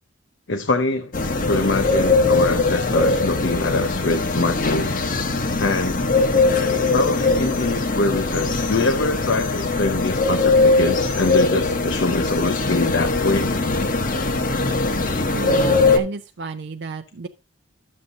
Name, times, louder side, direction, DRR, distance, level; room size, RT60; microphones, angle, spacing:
voice 1, 0.5-1.1 1.5-5.0 5.6-6.0 6.9-13.5, left 3 dB, 70° left, 0.7 m, -24 dB
sound 1, 1.1-16.0, left 3 dB, 45° left, 1.0 m, -21 dB
voice 2, 15.3-17.3, right 4 dB, 60° right, 0.5 m, -32 dB
11.0 x 7.5 x 2.6 m
head